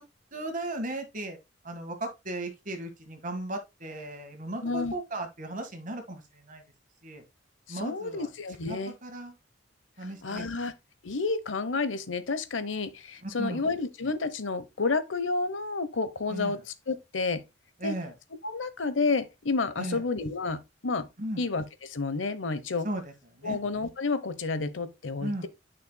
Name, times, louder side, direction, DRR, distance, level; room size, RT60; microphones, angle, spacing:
voice 1, 0.3-1.4 1.6-6.6 7.0-7.2 7.7-8.3 8.7-9.4 10.0-10.6 13.2-13.7 16.3-16.6 17.8-18.1 19.8-20.0 21.2-21.4 22.8-23.6 25.2-25.5, right 1 dB, 45° right, 1.7 m, -36 dB
voice 2, 4.6-4.9 7.7-8.9 10.2-10.7 11.0-16.6 16.9-17.4 17.8-17.9 18.4-21.1 21.4-22.9 23.4-25.5, left 3 dB, 90° left, 0.9 m, -30 dB
9.5 x 5.7 x 2.2 m
head